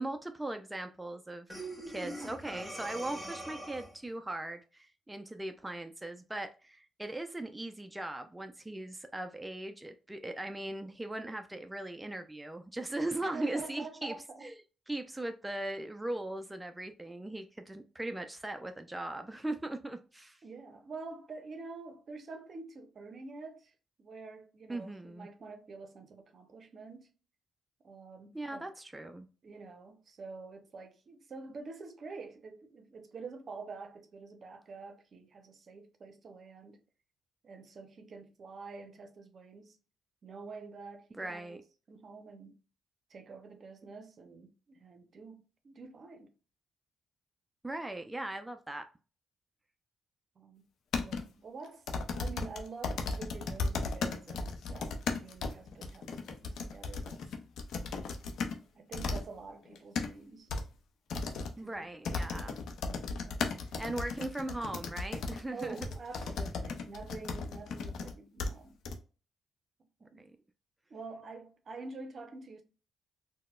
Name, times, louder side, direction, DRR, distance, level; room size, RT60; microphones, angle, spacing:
voice 1, 0.0-14.1 14.4-14.5 14.9-20.4 24.7-25.3 28.3-29.3 41.1-41.6 47.6-48.9 61.6-62.6 63.8-65.9 70.0-70.4, right 1 dB, 10° right, 0.4 m, -39 dB
Breathing, 1.5-4.1, right 1 dB, 5° left, 1.4 m, -42 dB
voice 2, 2.0-2.4 13.2-14.4 20.4-23.7 24.0-27.1 27.8-28.7 29.4-36.8 37.4-39.8 40.2-42.5 43.1-46.3 50.4-50.6 51.0-57.3 57.8-57.9 58.8-60.5 61.2-62.5 63.2-63.8 65.5-68.8 70.0-70.3 70.9-72.6, right 4 dB, 55° right, 0.6 m, -47 dB
sound 1, 50.9-51.2 51.9-58.6 58.9-59.2 59.7-60.1 60.5-60.6 61.1-61.5 62.0-68.1 68.4-68.5 68.8-68.9, left 4 dB, 75° left, 0.5 m, -35 dB
3.9 x 2.1 x 2.3 m
supercardioid pair, 65°, 0 cm